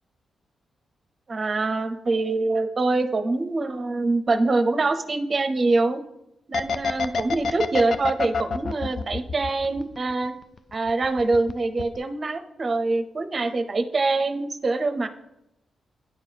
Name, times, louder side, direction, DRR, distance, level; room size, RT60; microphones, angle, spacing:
voice 1, 1.3-6.0 6.5-10.3 10.7-15.1, right 3 dB, 40° right, 8 dB, 0.6 m, -24 dB
sound 1, 6.5-10.3 10.6-11.5 11.8-12.0, left 5 dB, 55° left, 0.4 m, -26 dB
9.6 x 4.5 x 3.5 m, 0.85 s
cardioid pair, 105°, 0 cm